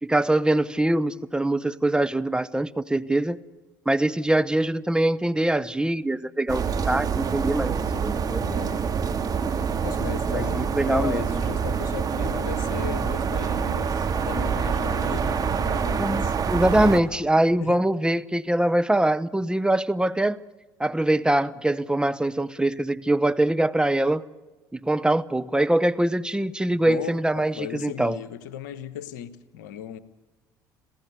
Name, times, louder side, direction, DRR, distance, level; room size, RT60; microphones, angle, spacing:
voice 1, 0.0-3.4 3.9-8.4 10.3-11.4 16.0-20.4 20.8-24.2 24.7-28.2, right 1 dB, 10° right, 0.9 m, -23 dB
sound 1, 6.5-17.0, right 6 dB, 40° right, 2.2 m, -26 dB
voice 2, 8.4-8.8 9.5-16.6 17.6-17.8 26.7-30.0, left 10 dB, 80° left, 1.2 m, -36 dB
26.5 x 16.0 x 8.2 m
hypercardioid pair, 65°, 10 cm